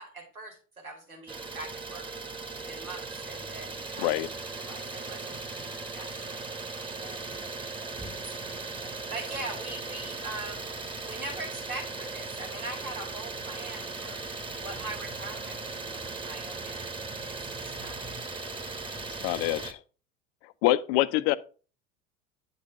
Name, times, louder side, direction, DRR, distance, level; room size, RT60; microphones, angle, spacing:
voice 1, 0.0-2.1 2.6-4.2 4.5-6.5 6.8-7.2 8.0-10.7 11.0-14.2 14.6-18.2, right 2 dB, 90° right, 2.3 m, -42 dB
Idling, 1.3-19.7, right 3 dB, 10° right, 1.1 m, -38 dB
voice 2, 19.2-19.8 20.4-21.4, left 15 dB, 50° left, 0.6 m, -25 dB
10.0 x 4.1 x 4.7 m
figure-of-eight pair, 70°, 42 cm